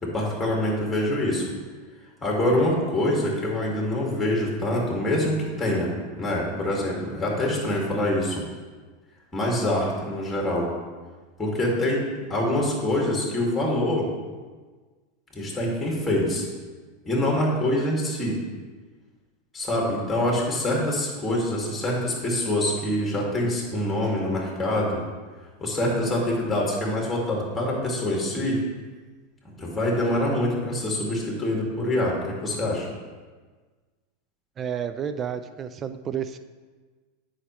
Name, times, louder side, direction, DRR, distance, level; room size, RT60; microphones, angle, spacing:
voice 1, 0.0-1.5 2.2-8.4 9.3-10.7 11.4-14.1 15.3-16.5 17.1-18.4 19.5-25.0 25.6-28.6 29.6-32.9, left 1 dB, 10° left, -2 dB, 2.0 m, -25 dB
voice 2, 34.6-36.4, right 8 dB, 30° right, 11 dB, 0.3 m, -31 dB
9.6 x 5.0 x 3.1 m, 1.4 s
hypercardioid pair, 100°, 0 cm